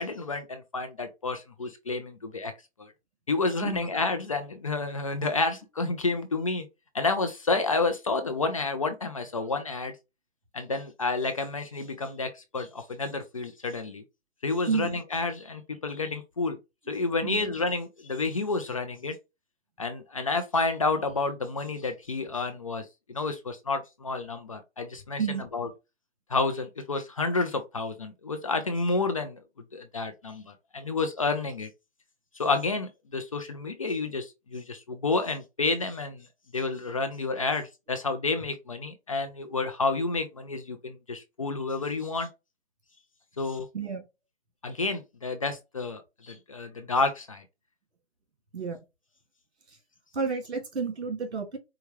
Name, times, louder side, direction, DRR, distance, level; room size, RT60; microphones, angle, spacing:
voice 1, 0.0-2.5 2.8-2.9 3.3-6.7 6.9-9.9 10.5-14.0 14.4-16.6 16.9-19.1 19.8-25.7 26.3-29.4 29.7-31.7 32.3-36.3 36.5-42.3 43.4-43.7 44.6-47.4, left 3 dB, 30° left, 0.5 m, -30 dB
voice 2, 14.7-15.0 17.2-17.5 25.2-25.5 43.7-44.0 48.5-48.8 50.1-51.6, right 5 dB, 70° right, 2.0 m, -30 dB
4.6 x 2.3 x 3.1 m
hypercardioid pair, 150°, 34 cm